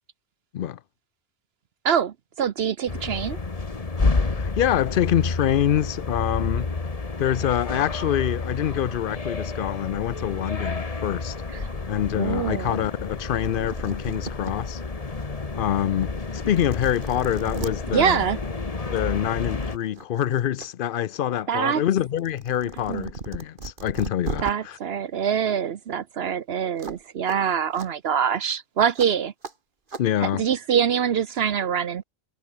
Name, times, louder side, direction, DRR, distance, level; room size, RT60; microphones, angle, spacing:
voice 1, 1.8-3.4 11.5-11.7 12.2-12.8 17.9-18.4 21.5-21.8 22.9-23.1 24.4-29.3 30.2-32.0, right 8 dB, 70° right, 1.0 m, -24 dB
sound 1, 2.9-19.8, left 3 dB, 35° left, 1.5 m, -30 dB
voice 2, 4.3-6.7 7.2-11.4 11.9-14.8 15.6-18.2 18.9-24.8 30.0-30.5, left 10 dB, 60° left, 0.7 m, -25 dB
sound 2, 13.2-13.3 13.4-14.5 15.1-15.2 16.0-16.1 16.5-17.7 19.0-19.2 19.6-20.7 21.0-24.5 26.8-27.0 27.3-27.4 27.7-27.9 29.0-29.1 29.4-29.5 29.9-30.0, right 4 dB, 50° right, 1.9 m, -36 dB
omnidirectional pair, 1.1 m